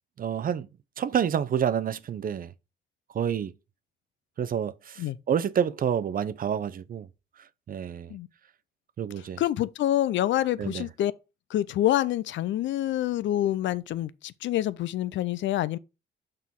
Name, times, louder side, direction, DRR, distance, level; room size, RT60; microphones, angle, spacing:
voice 1, 0.2-0.7 1.0-2.5 3.1-3.5 4.4-7.1 7.7-8.1 9.0-9.4 10.6-10.8, right 8 dB, 45° right, 0.6 m, -28 dB
voice 2, 9.4-11.1 11.5-15.8, left 13 dB, 70° left, 0.5 m, -27 dB
6.1 x 4.4 x 3.6 m
cardioid pair, 90°, 20 cm